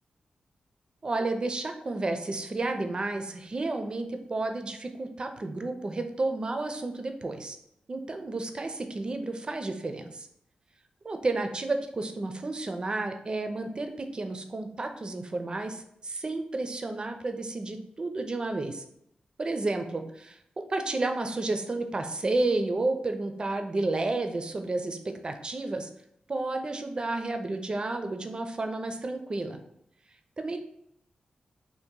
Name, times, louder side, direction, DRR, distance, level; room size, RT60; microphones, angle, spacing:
voice 1, 1.0-7.6 7.9-10.3 11.0-18.8 19.4-25.9 26.3-29.6 30.4-30.6, right 2 dB, 35° right, 6 dB, 0.4 m, -31 dB
2.8 x 2.5 x 3.7 m, 0.74 s
cardioid pair, 80°, 3 cm